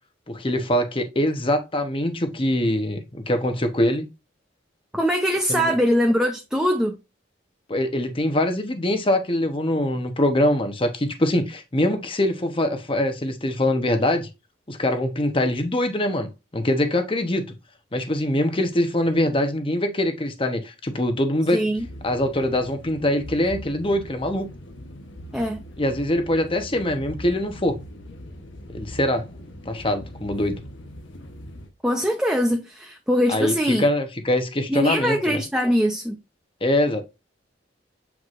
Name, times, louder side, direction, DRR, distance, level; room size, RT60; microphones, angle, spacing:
voice 1, 0.3-4.1 5.5-5.7 7.7-14.3 14.7-17.5 17.9-21.6 22.0-24.5 25.8-27.8 28.7-29.3 29.7-30.6 33.3-35.4 36.6-37.0, left 1 dB, 30° left, 1.0 m, -23 dB
voice 2, 4.9-7.0 21.5-21.9 25.3-25.6 31.8-33.9 34.7-36.2, equal, 5° right, 0.7 m, -22 dB
sound 1, 21.8-31.7, equal, 85° left, 1.1 m, -41 dB
7.9 x 4.7 x 2.6 m
head